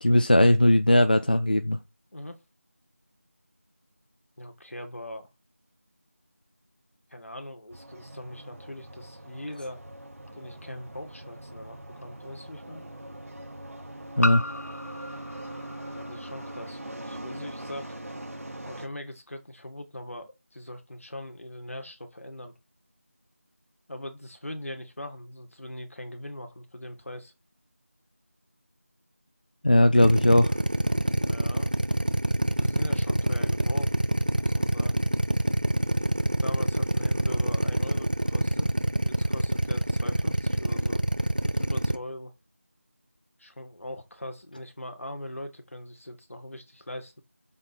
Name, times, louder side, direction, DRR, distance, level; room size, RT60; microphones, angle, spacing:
voice 1, 0.0-1.8 14.2-14.4 29.6-30.5, left 1 dB, 35° left, 0.5 m, -19 dB
voice 2, 4.4-5.3 7.1-9.8 10.3-12.8 15.9-17.9 18.7-22.5 23.9-27.3 31.1-31.7 32.6-34.0 34.3-35.0 36.4-41.0 41.4-42.3 43.4-47.2, left 1 dB, 65° left, 2.1 m, -41 dB
sound 1, 7.7-18.9, right 1 dB, 75° right, 2.6 m, -42 dB
sound 2, 10.3-10.4 12.0-12.1 14.2-16.7, left 1 dB, 85° left, 0.6 m, -35 dB
Drill, 30.0-42.0, right 1 dB, 35° right, 0.5 m, -25 dB
7.1 x 4.3 x 4.4 m
figure-of-eight pair, 175°, 8 cm